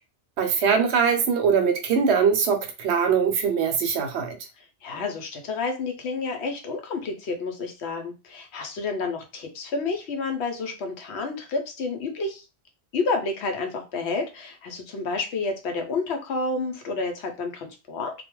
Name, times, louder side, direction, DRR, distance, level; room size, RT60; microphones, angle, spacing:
voice 1, 0.4-4.4, right 6 dB, 70° right, 5 dB, 0.8 m, -22 dB
voice 2, 4.6-12.5 12.9-18.1, left 3 dB, 70° left, 4 dB, 0.8 m, -30 dB
2.3 x 2.1 x 2.9 m, 0.28 s
omnidirectional pair, 1.2 m